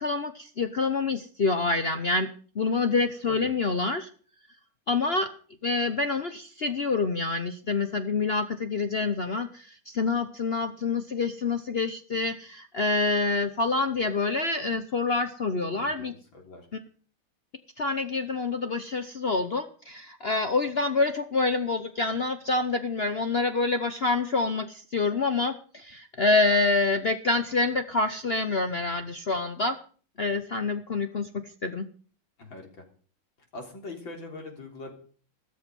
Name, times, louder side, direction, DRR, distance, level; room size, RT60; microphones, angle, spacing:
voice 1, 0.0-2.3 2.5-4.1 4.9-5.3 5.6-16.1 16.7-16.8 17.8-29.8 30.2-31.9, left 3 dB, 80° left, 8 dB, 0.5 m, -27 dB
voice 2, 15.7-16.7 32.4-32.9 33.5-34.9, left 2 dB, 60° left, 2 dB, 4.3 m, -42 dB
14.5 x 13.5 x 5.3 m, 0.43 s
omnidirectional pair, 2.3 m